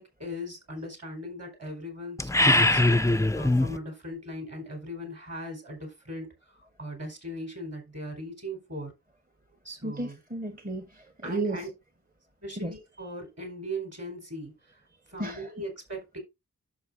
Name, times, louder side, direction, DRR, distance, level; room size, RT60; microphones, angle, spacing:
voice 1, 0.0-2.8 3.3-8.9 9.6-10.2 11.2-11.7 12.4-14.8 15.1-16.2, equal, 45° right, 4.3 m, -39 dB
sound 1, 2.2-3.8, left 2 dB, 10° left, 0.4 m, -22 dB
voice 2, 9.8-11.6 12.6-12.7 15.2-15.6, right 2 dB, 25° right, 1.1 m, -33 dB
11.0 x 6.6 x 2.5 m
wide cardioid pair, 75°, 34 cm